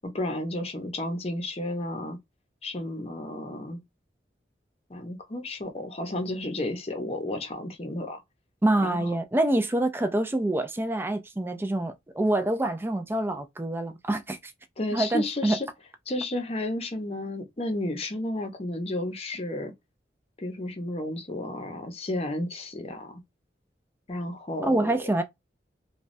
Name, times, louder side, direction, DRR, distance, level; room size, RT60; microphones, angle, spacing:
voice 1, 0.0-2.2 2.6-3.8 4.9-8.2 8.8-9.1 14.8-15.7 16.1-19.7 20.4-23.2 24.1-24.9, left 1 dB, 35° left, 0.7 m, -32 dB
voice 2, 8.6-14.5 14.9-15.6 24.6-25.2, right 1 dB, 15° right, 0.4 m, -26 dB
3.0 x 2.3 x 2.6 m
head